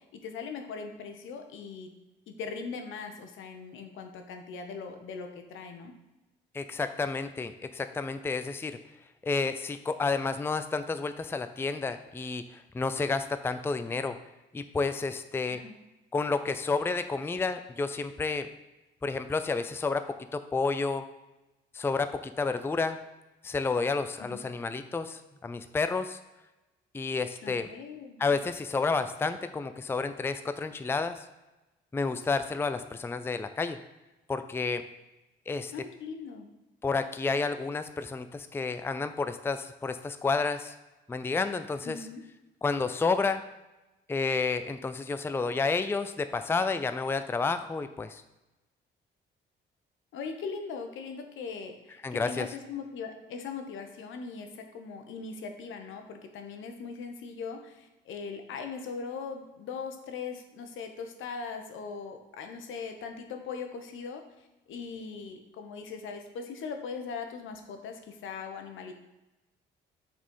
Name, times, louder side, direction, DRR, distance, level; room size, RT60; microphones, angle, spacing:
voice 1, 0.0-1.9 2.3-5.9 15.5-15.8 24.2-24.4 27.4-28.3 35.7-36.5 41.8-42.2 50.1-68.9, left 5 dB, 80° left, 5 dB, 1.0 m, -40 dB
voice 2, 6.5-8.8 9.2-14.2 14.5-15.6 16.1-18.5 19.0-20.0 20.3-21.0 21.7-23.0 23.4-26.2 26.9-27.7 28.2-31.2 31.9-33.8 34.3-34.8 35.5-35.7 36.8-40.7 41.1-42.0 42.6-43.4 44.1-48.2 52.0-52.5, left 4 dB, 10° left, 10 dB, 0.4 m, -30 dB
6.1 x 4.3 x 5.4 m, 1.0 s
cardioid pair, 90°, 20 cm